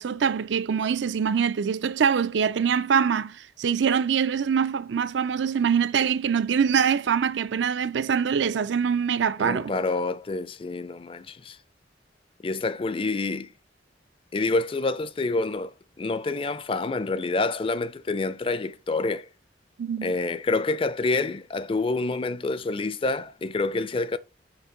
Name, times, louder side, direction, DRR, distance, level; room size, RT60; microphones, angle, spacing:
voice 1, 0.0-9.7 19.8-20.1, right 7 dB, 80° right, 0.4 m, -24 dB
voice 2, 9.4-11.6 12.4-13.5 14.3-19.3 20.0-24.2, left 3 dB, 30° left, 0.4 m, -27 dB
5.9 x 3.5 x 5.2 m
head